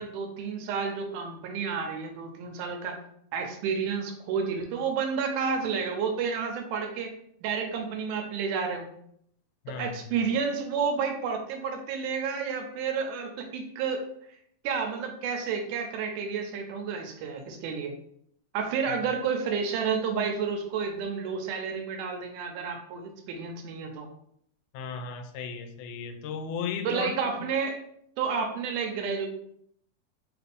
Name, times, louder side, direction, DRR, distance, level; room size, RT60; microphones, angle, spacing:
voice 1, 0.0-3.0 3.3-7.1 7.4-8.9 9.8-14.0 14.6-17.9 18.5-24.1 26.9-27.8 28.2-29.3, right 6 dB, 85° right, 3 dB, 2.1 m, -30 dB
voice 2, 9.7-10.0 18.9-19.0 24.7-27.1, left 6 dB, 85° left, 7 dB, 2.0 m, -35 dB
4.8 x 2.5 x 3.3 m, 0.70 s
omnidirectional pair, 3.5 m